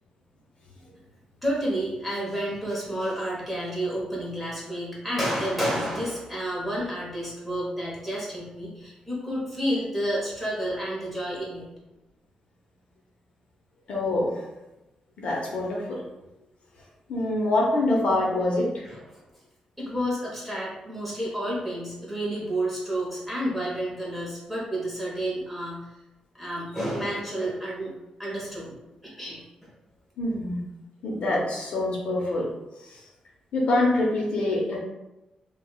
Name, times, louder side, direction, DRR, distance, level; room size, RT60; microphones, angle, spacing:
voice 1, 1.4-11.6 18.9-19.2 19.8-25.8 26.4-27.9 28.2-28.8 29.0-29.4, equal, ahead, -6 dB, 1.0 m, -30 dB
voice 2, 13.9-14.4 15.2-16.0 17.1-18.9 30.2-30.6 31.0-32.5 32.8-33.0 33.5-34.8, left 2 dB, 60° left, -2 dB, 0.8 m, -25 dB
4.9 x 2.4 x 2.3 m, 0.98 s
wide cardioid pair, 165°, 2 cm